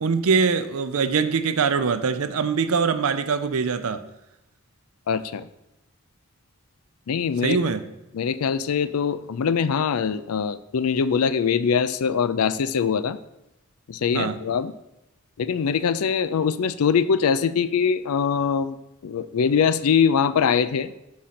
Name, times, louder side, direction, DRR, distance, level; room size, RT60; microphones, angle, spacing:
voice 1, 0.0-4.0 7.4-7.8 14.1-14.4, right 5 dB, 80° right, 11 dB, 0.5 m, -23 dB
voice 2, 5.1-5.5 7.1-7.6 8.1-13.2 13.9-14.7 15.4-18.8 19.0-20.9, left 6 dB, 90° left, 15 dB, 0.4 m, -22 dB
6.3 x 4.2 x 5.8 m, 0.91 s
head